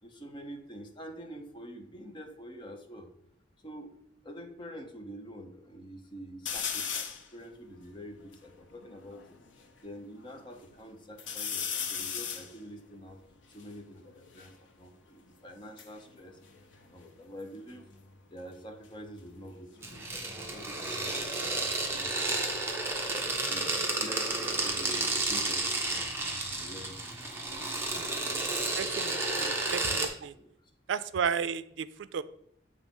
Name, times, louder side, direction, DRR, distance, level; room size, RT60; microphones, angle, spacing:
voice 1, 0.0-3.1 3.6-4.0 4.2-9.4 9.8-13.2 13.5-16.4 16.8-17.9 18.3-22.6 23.5-26.1 26.5-29.1 30.3-30.5, equal, 25° left, 4 dB, 0.8 m, -47 dB
sound 1, 6.5-7.3 7.9-8.0 8.1-9.7 10.2-10.8 11.2-14.6 15.5-17.4 17.7-18.2 19.7-22.4 22.7-23.5, left 7 dB, 90° left, 0.7 m, -39 dB
sound 2, 19.8-30.1, right 2 dB, 15° right, 0.9 m, -32 dB
voice 2, 28.8-30.3 30.9-32.2, right 7 dB, 80° right, 15 dB, 0.4 m, -33 dB
7.5 x 3.2 x 5.3 m, 0.72 s
head